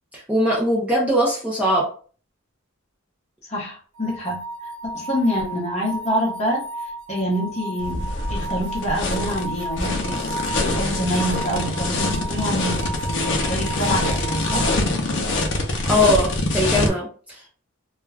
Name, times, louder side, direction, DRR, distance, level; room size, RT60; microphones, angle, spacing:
voice 1, 0.1-1.9 15.9-17.5, equal, 5° right, -5 dB, 0.5 m, -21 dB
voice 2, 3.5-4.4 4.9-6.6 7.1-10.3 10.7-14.7, equal, 30° left, -2 dB, 0.9 m, -26 dB
sound 1, 4.0-14.8, right 1 dB, 65° right, 1.0 m, -33 dB
sound 2, 7.8-16.9, left 2 dB, 55° left, 0.6 m, -24 dB
2.3 x 2.2 x 3.2 m, 0.41 s
head